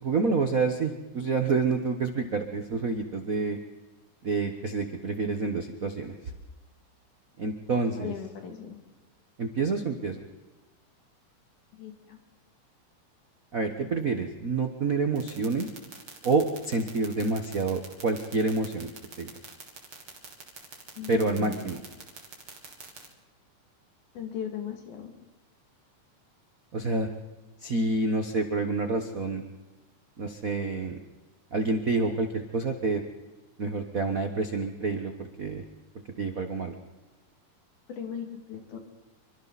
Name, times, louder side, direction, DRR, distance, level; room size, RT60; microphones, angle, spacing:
voice 1, 0.0-3.6 4.2-6.3 7.4-8.1 9.4-10.2 13.5-15.7 16.2-18.9 19.2-19.3 21.1-21.8 26.7-27.1 27.6-29.4 30.2-31.0 31.5-33.0 33.6-35.6 36.2-36.7, right 3 dB, 85° right, 6 dB, 0.7 m, -28 dB
voice 2, 8.0-8.8 11.7-12.2 21.0-21.8 24.1-25.1 37.9-38.8, left 9 dB, 70° left, 4 dB, 3.9 m, -38 dB
sound 1, 15.2-23.1, right 6 dB, 45° right, 3.4 m, -44 dB
27.0 x 24.0 x 4.2 m, 1.1 s
omnidirectional pair, 3.7 m